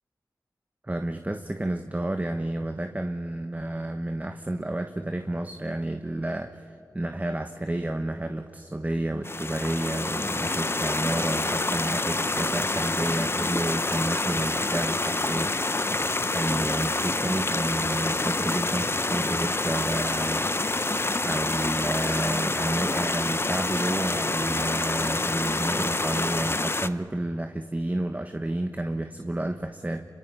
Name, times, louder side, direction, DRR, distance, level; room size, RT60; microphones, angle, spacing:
voice 1, 0.8-20.5 21.2-30.0, right 1 dB, 20° right, 6 dB, 1.2 m, -31 dB
sound 1, 9.2-26.9, left 2 dB, 35° left, 0.9 m, -27 dB
26.5 x 23.0 x 5.6 m, 2.4 s
cardioid pair, 40°, 7 cm